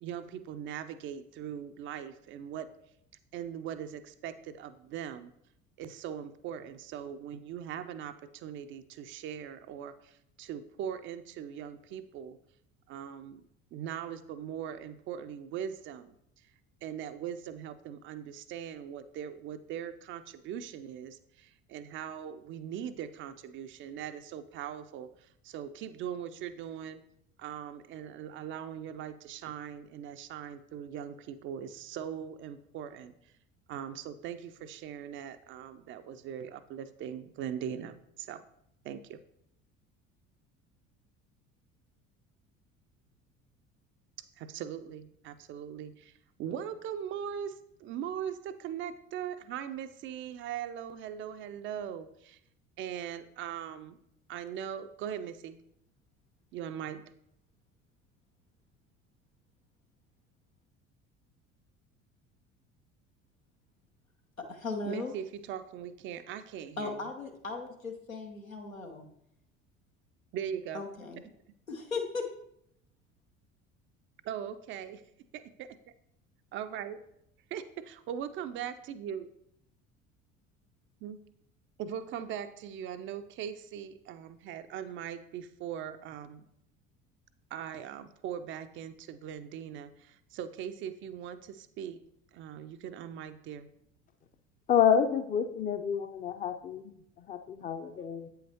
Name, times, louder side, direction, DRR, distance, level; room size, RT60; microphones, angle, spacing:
voice 1, 0.0-2.7 3.3-5.3 5.8-12.4 12.9-13.4 13.7-16.1 16.8-27.0 27.4-33.3 33.7-38.4 38.8-39.2 44.4-52.4 52.8-54.0 54.3-55.6 56.5-57.1 64.9-67.0 70.3-70.9 74.2-75.0 75.3-75.8 76.5-77.0 77.5-77.6 78.1-79.3 81.0-81.2 81.8-86.4 87.5-92.0 92.3-93.7, right 9 dB, 35° right, 11 dB, 0.4 m, -40 dB
voice 2, 64.5-65.1 66.8-69.0 70.7-71.2 71.7-72.2, left 3 dB, 90° left, 2 dB, 0.8 m, -37 dB
voice 3, 94.7-96.9 97.3-98.3, left 8 dB, 20° left, 9 dB, 0.5 m, -28 dB
8.3 x 5.6 x 2.8 m, 0.75 s
figure-of-eight pair, 60°, 39 cm